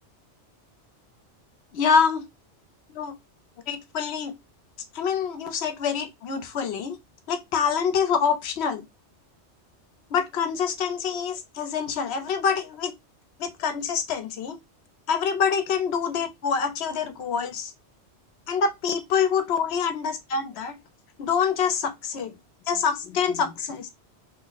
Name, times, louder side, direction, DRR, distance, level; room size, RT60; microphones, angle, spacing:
voice 1, 1.7-2.3 2.9-3.1 3.7-4.3 4.9-7.0 7.3-8.8 10.1-12.9 13.4-14.6 15.1-17.7 18.5-20.8 21.2-22.3 22.7-23.9, left 6 dB, 70° left, 0.8 m, -26 dB
2.8 x 2.1 x 3.9 m
omnidirectional pair, 1.2 m